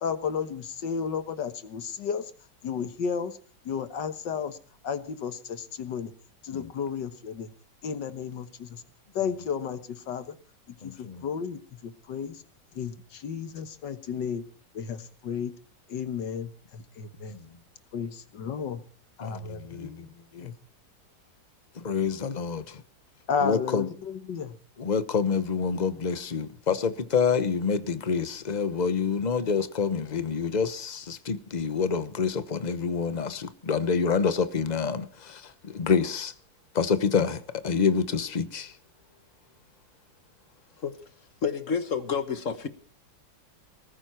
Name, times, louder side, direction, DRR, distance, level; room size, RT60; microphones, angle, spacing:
voice 1, 0.0-2.2 2.6-3.3 3.7-4.6 4.8-6.1 6.4-7.5 7.8-8.8 9.2-9.8 10.1-10.4 10.8-10.9 11.2-12.4 12.8-14.4 14.8-15.5 15.9-17.3 17.9-18.8 19.2-19.9 20.4-20.5 23.3-24.5, left 6 dB, 75° left, 2.0 m, -32 dB
voice 2, 10.8-11.2 17.3-17.5 19.2-20.1 20.3-20.5 21.8-22.8 23.4-23.9 24.8-36.3 36.7-38.7, left 6 dB, 30° left, 0.8 m, -27 dB
voice 3, 41.4-42.7, left 6 dB, 50° left, 1.5 m, -29 dB
20.0 x 14.5 x 4.4 m
omnidirectional pair, 1.9 m